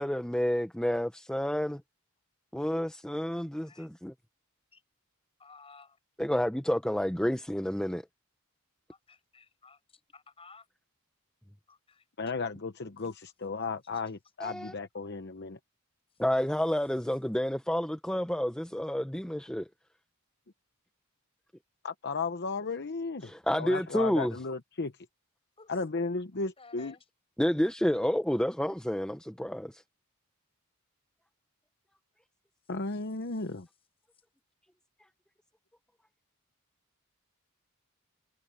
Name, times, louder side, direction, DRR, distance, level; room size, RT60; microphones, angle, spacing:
voice 1, 0.0-1.8 2.5-4.1 6.2-8.0 14.4-14.7 16.2-19.7 23.2-24.3 27.4-29.8, equal, 5° left, 0.7 m, -29 dB
voice 2, 5.4-6.0 9.1-10.7 11.7-12.0 25.6-25.7 26.6-27.0 33.3-33.4, left 4 dB, 25° left, 6.3 m, -55 dB
voice 3, 12.2-15.6 21.8-23.3 23.6-24.9 25.7-27.0 32.7-33.7, left 4 dB, 50° left, 0.9 m, -34 dB
head